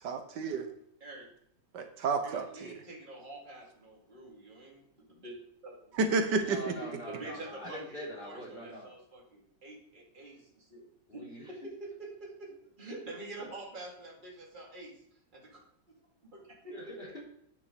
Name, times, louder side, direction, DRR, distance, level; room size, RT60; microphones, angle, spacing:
voice 1, 0.0-0.7 1.7-2.7 6.0-6.6, right 4 dB, 70° right, 7 dB, 1.6 m, -30 dB
voice 2, 2.2-5.4 5.6-6.0 7.1-10.9 11.1-12.5 12.8-14.9 15.3-15.6 16.2-17.0, right 2 dB, 25° right, -2 dB, 2.4 m, -46 dB
voice 3, 6.4-8.9 11.1-11.7 16.7-17.2, left 1 dB, 30° left, -5 dB, 3.8 m, -43 dB
9.7 x 6.3 x 5.0 m, 0.71 s
omnidirectional pair, 2.0 m